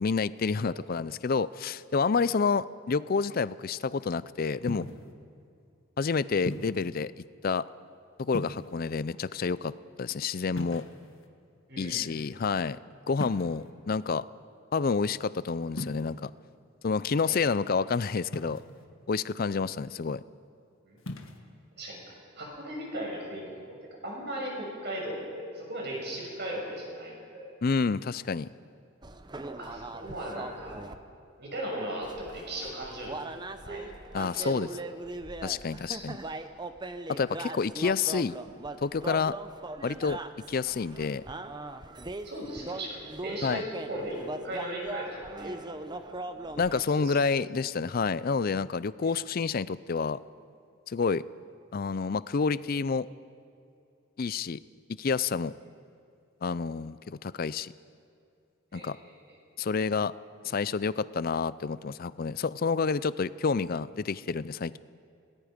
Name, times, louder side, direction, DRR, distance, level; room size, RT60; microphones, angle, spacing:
voice 1, 0.0-4.9 6.0-7.1 7.4-7.6 8.2-9.7 10.0-10.8 11.8-12.8 13.1-14.2 14.7-16.3 16.8-18.6 19.1-20.2 27.6-28.5 34.1-34.7 35.4-36.2 37.1-38.4 38.8-39.3 39.8-40.2 40.5-41.2 43.4-43.6 46.6-50.2 50.9-51.2 51.7-53.1 54.2-54.6 54.9-55.5 56.4-57.7 58.7-59.0 59.6-60.1 60.4-64.8, left 5 dB, 45° left, 17 dB, 0.4 m, -29 dB
sound 1, 4.7-5.1 6.5-6.9 8.3-8.9 10.5-11.3 13.2-13.7 15.7-16.0 18.3-18.8 21.0-21.4, left 1 dB, 70° left, 1.6 m, -38 dB
voice 2, 11.7-12.1 17.3-17.5 20.8-21.0 21.8-23.6 24.0-27.5 29.6-30.8 31.4-33.2 33.6-33.8 34.3-34.5 35.9-36.0 42.2-44.2 44.4-45.6 46.3-46.4 46.9-47.2 49.0-49.1 58.7-59.0, right 1 dB, 50° right, -2 dB, 6.3 m, -37 dB
Dope City Varanasi, 29.0-31.0 32.0-46.8, right 2 dB, 20° right, 0.7 m, -40 dB
27.5 x 19.5 x 5.2 m, 2.5 s
head